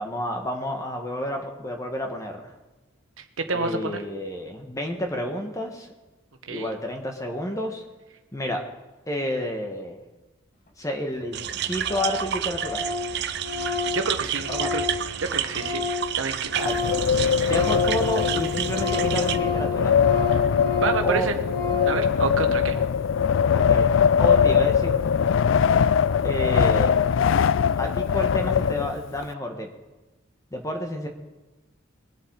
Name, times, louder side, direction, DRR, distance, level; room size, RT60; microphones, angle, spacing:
voice 1, 0.0-2.5 3.5-5.9 6.5-7.8 8.3-8.6 9.1-10.0 10.8-12.8 14.5-14.7 16.5-16.8 17.4-20.0 21.0-21.3 22.7-22.9 23.5-25.0 26.2-27.0 27.8-29.7 30.5-31.1, left 1 dB, 15° left, 3 dB, 1.5 m, -30 dB
voice 2, 3.5-4.0 6.5-6.7 13.5-14.8 15.2-15.8 16.2-16.8 17.4-17.5 20.8-21.4 21.8-22.8, right 4 dB, 75° right, 6 dB, 1.3 m, -28 dB
Organ, 10.9-11.0 11.2-11.3 11.5-11.6 11.9-12.2 12.5-16.1 16.4-22.0, left 5 dB, 40° left, 2.2 m, -30 dB
sound 1, 11.3-19.4, right 10 dB, 55° right, 0.6 m, -30 dB
Wind, 16.6-29.2, left 7 dB, 70° left, 0.3 m, -22 dB
22.0 x 8.1 x 4.8 m, 1.1 s
head